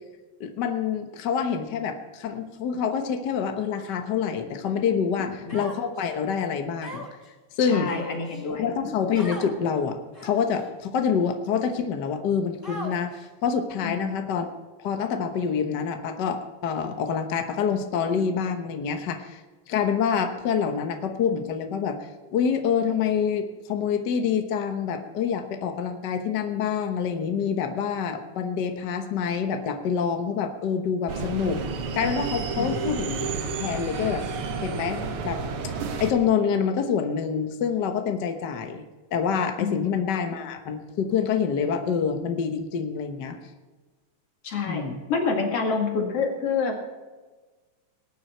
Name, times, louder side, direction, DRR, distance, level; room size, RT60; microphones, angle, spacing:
voice 1, 0.4-7.0 7.6-7.9 8.6-14.5 14.8-19.4 19.7-22.0 22.3-31.6 31.9-34.2 34.6-35.7 36.0-38.8 39.1-43.4 44.7-45.0, left 7 dB, 80° left, 6 dB, 0.9 m, -26 dB
Human voice, 5.5-6.1 6.8-7.3 7.8-8.4 9.1-9.5 10.1-10.6 11.3-11.4 12.6-13.2, equal, 5° left, 2.4 m, -38 dB
voice 2, 7.6-9.1 13.8-14.2 32.6-32.7 39.6-39.9 44.4-44.8 45.1-46.8, left 4 dB, 50° left, 2 dB, 2.8 m, -28 dB
sound 1, 31.1-36.1, right 5 dB, 60° right, 1.6 m, -31 dB
19.5 x 9.2 x 4.4 m, 1.3 s
omnidirectional pair, 3.6 m